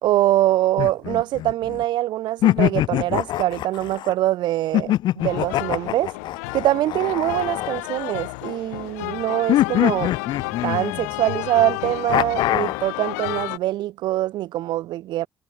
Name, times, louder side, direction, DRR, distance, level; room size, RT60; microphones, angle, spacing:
voice 1, 0.0-6.1 6.5-10.1 10.6-15.3, right 15 dB, 70° right, 4.2 m, -23 dB
sound 1, 0.8-1.8 2.4-4.1 4.7-8.5 9.5-11.3 12.1-12.9, left 14 dB, 65° left, 0.9 m, -24 dB
sound 2, 5.2-13.6, left 29 dB, 80° left, 3.2 m, -32 dB
hypercardioid pair, 45°, 8 cm